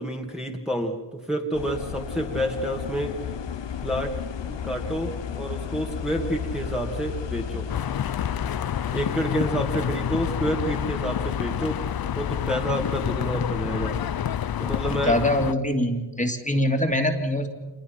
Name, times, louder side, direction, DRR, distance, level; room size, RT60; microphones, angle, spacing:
voice 1, 0.0-3.2 3.8-4.1 4.5-7.7 8.9-11.8 12.2-13.9 14.6-15.1, equal, ahead, -1 dB, 2.3 m, -29 dB
sound 1, 1.5-14.9, left 7 dB, 65° left, 1.1 m, -35 dB
sound 2, 7.7-15.5, left 10 dB, 50° left, 0.6 m, -28 dB
voice 2, 14.8-17.5, left 1 dB, 15° left, 4 dB, 2.6 m, -24 dB
26.5 x 21.0 x 5.9 m, 1.2 s
cardioid pair, 65°, 46 cm